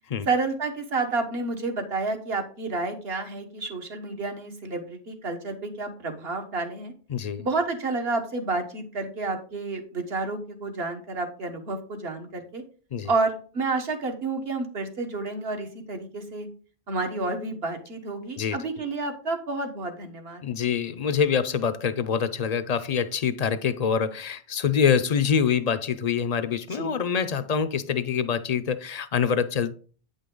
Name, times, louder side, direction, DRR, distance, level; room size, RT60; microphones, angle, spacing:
voice 1, 0.3-6.9 7.4-12.6 13.1-16.5 16.9-20.4 26.7-27.0, right 3 dB, 75° right, 1.5 m, -30 dB
voice 2, 7.1-7.5 12.9-13.1 18.4-18.6 20.4-29.7, left 7 dB, 50° left, 0.5 m, -25 dB
8.8 x 5.3 x 3.8 m
omnidirectional pair, 1.0 m